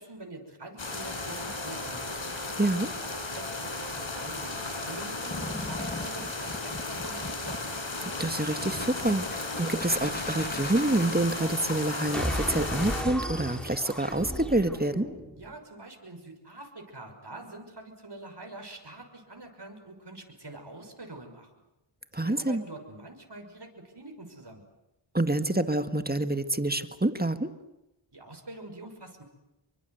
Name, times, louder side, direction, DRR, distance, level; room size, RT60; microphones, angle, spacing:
voice 1, 0.0-2.2 2.9-7.7 15.3-21.6 22.1-24.6 28.1-29.2, right 2 dB, 55° right, 5 dB, 6.2 m, -45 dB
sound 1, 0.8-13.0, left 2 dB, 65° left, 4.7 m, -35 dB
voice 2, 2.6-2.9 8.2-15.1 22.1-22.6 25.1-27.5, right 1 dB, 20° right, 10 dB, 1.9 m, -27 dB
sound 2, 5.3-13.3, left 2 dB, 20° left, 1.8 m, -41 dB
sound 3, 12.1-15.5, equal, ahead, 4.6 m, -35 dB
28.0 x 23.5 x 8.1 m, 0.93 s
wide cardioid pair, 55°, 49 cm